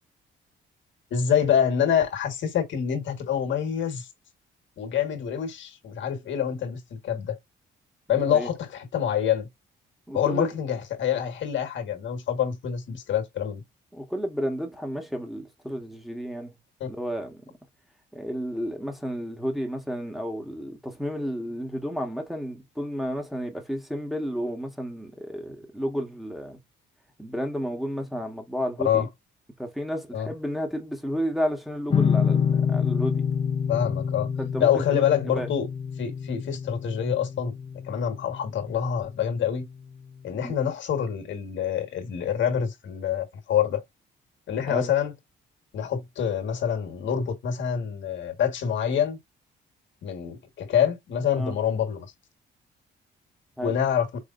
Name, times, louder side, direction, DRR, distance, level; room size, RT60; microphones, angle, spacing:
voice 1, 1.1-4.1 4.8-7.4 8.1-9.5 10.1-13.6 16.8-16.9 28.8-29.1 30.1-30.3 33.7-34.3 34.6-35.7 36.0-37.5 37.8-39.7 40.2-43.8 44.5-45.1 45.7-49.2 50.0-52.1 53.6-54.1, left 8 dB, 70° left, 1.6 m, -26 dB
voice 2, 8.1-8.5 10.1-10.5 13.9-16.5 16.9-17.4 18.1-26.6 27.2-29.1 29.6-33.3 34.4-35.1 35.3-35.5 40.4-40.5 44.7-44.9 51.4-51.5 53.6-53.7, equal, ahead, 1.5 m, -32 dB
sound 1, 31.9-39.1, left 7 dB, 30° left, 0.6 m, -27 dB
4.9 x 3.3 x 2.5 m
cardioid pair, 90°, 20 cm